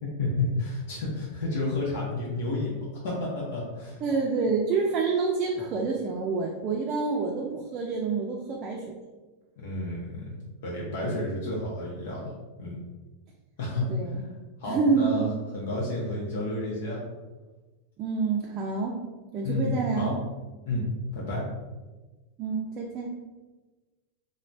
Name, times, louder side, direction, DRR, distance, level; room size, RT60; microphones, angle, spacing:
voice 1, 0.0-4.0 9.6-10.3 10.6-12.3 12.6-12.8 13.6-13.9 14.6-15.2 15.5-17.0 19.4-19.7 19.9-20.1 20.6-20.8 21.1-21.4, left 2 dB, 70° left, -4 dB, 0.7 m, -31 dB
voice 2, 4.0-8.8 10.9-11.2 13.9-14.2 14.6-15.3 18.0-19.0 19.3-20.2 20.7-20.8 22.4-23.1, right 4 dB, 40° right, -1 dB, 0.4 m, -28 dB
2.5 x 2.1 x 3.2 m, 1.2 s
hypercardioid pair, 115°, 0 cm